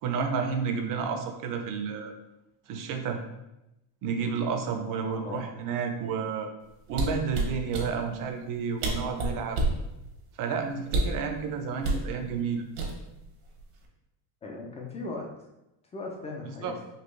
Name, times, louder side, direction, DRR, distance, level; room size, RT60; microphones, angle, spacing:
voice 1, 0.0-2.1 2.7-3.2 4.0-6.5 6.9-9.6 10.4-12.6 16.6-16.7, right 6 dB, 45° right, 5 dB, 0.6 m, -31 dB
voice 2, 4.9-5.5 14.4-15.5 15.9-16.8, left 3 dB, 15° left, 0 dB, 0.3 m, -38 dB
sound 1, 6.9-7.9 8.5-8.6 8.8-9.8 10.9-11.2 11.8-12.1 12.8-13.2 13.6-13.9, right 2 dB, 75° right, 1.1 m, -28 dB
4.3 x 2.8 x 3.2 m, 0.91 s
cardioid pair, 140°, 46 cm